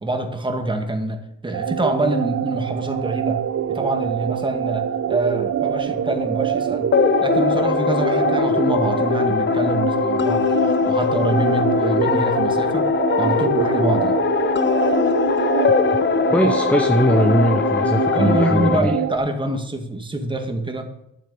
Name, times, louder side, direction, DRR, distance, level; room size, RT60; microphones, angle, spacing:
voice 1, 0.0-3.4 3.7-6.9 7.2-12.9 13.2-14.2 17.7-20.9, right 2 dB, 15° right, 5 dB, 1.9 m, -25 dB
sound 1, 1.5-19.2, right 9 dB, 55° right, 0.8 m, -25 dB
sound 2, 6.9-18.8, left 7 dB, 40° left, 0.8 m, -21 dB
voice 2, 16.3-19.0, equal, 5° left, 7 dB, 0.8 m, -20 dB
12.0 x 7.6 x 5.3 m, 0.81 s
cardioid pair, 90°, 30 cm